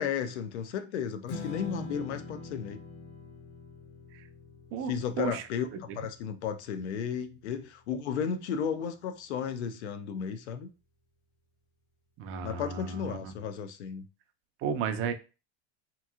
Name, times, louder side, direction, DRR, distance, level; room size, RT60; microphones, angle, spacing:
voice 1, 0.0-2.8 4.9-10.7 12.4-14.1, left 7 dB, 85° left, 0.5 m, -34 dB
Strum, 1.3-7.6, left 3 dB, 45° left, 0.7 m, -44 dB
voice 2, 12.2-13.3 14.6-15.1, right 6 dB, 40° right, 0.5 m, -33 dB
2.9 x 2.7 x 2.3 m
hypercardioid pair, 95°, 33 cm